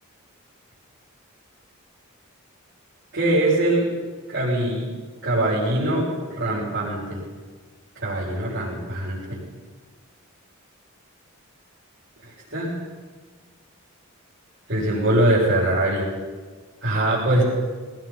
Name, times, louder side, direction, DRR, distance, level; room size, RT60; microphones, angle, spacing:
voice 1, 3.1-3.9 4.3-4.9 5.2-7.2 8.0-9.4 12.2-12.7 14.7-16.1 16.8-17.4, right 1 dB, 55° right, -8 dB, 7.0 m, -22 dB
23.0 x 19.5 x 5.9 m, 1.5 s
head